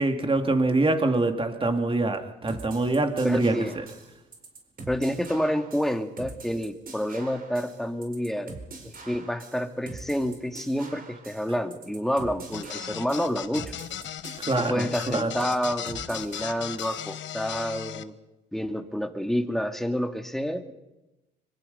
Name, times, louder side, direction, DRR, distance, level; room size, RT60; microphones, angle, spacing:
voice 1, 0.0-3.5 14.4-15.3, right 2 dB, 25° right, 5 dB, 2.7 m, -24 dB
sound 1, 2.5-17.1, right 3 dB, 45° right, 4.8 m, -44 dB
voice 2, 3.2-3.8 4.9-8.5 8.8-13.7 14.6-18.1 18.5-20.7, equal, ahead, 5 dB, 2.2 m, -29 dB
sound 2, 12.5-18.0, left 10 dB, 70° left, 1.1 m, -37 dB
24.5 x 23.5 x 5.6 m, 1.0 s
cardioid pair, 90°, 20 cm